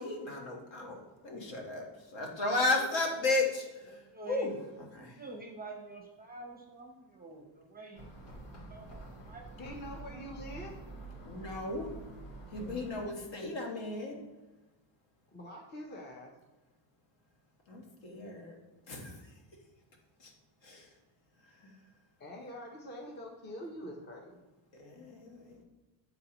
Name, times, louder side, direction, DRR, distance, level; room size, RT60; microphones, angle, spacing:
voice 1, 0.0-1.8 2.1-3.7 4.3-4.5 5.0-5.1 11.3-11.9 12.5-14.2 17.7-18.5 18.9-19.1 20.2-20.3 20.6-20.8 21.6-21.7 24.7-25.6, left 2 dB, 60° left, 1 dB, 1.4 m, -34 dB
voice 2, 3.9-8.2 8.7-10.3, right 2 dB, 20° right, 1 dB, 0.6 m, -48 dB
sound 1, 7.9-13.0, right 2 dB, 85° left, 2.1 m, -47 dB
voice 3, 9.6-10.7 15.3-16.3 22.2-24.4, equal, 20° left, 1 dB, 0.6 m, -45 dB
9.2 x 3.9 x 2.9 m, 1.1 s
cardioid pair, 160°, 50 cm